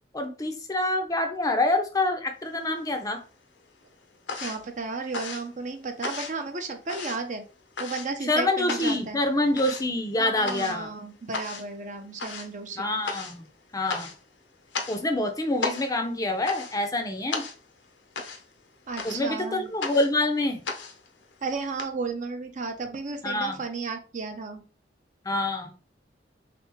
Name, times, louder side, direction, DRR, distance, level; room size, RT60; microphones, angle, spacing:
voice 1, 0.1-3.2 8.3-10.9 12.8-13.4 13.7-14.1 14.9-17.4 19.0-20.6 23.2-23.6 25.3-25.7, left 2 dB, 20° left, 0.5 m, -26 dB
sound 1, 2.5-3.3 3.6-21.8, left 4 dB, 85° left, 0.7 m, -37 dB
voice 2, 4.3-7.4 7.8-9.2 10.2-12.9 18.9-19.7 21.4-24.6, right 4 dB, 45° right, 0.6 m, -33 dB
3.4 x 3.3 x 3.0 m
head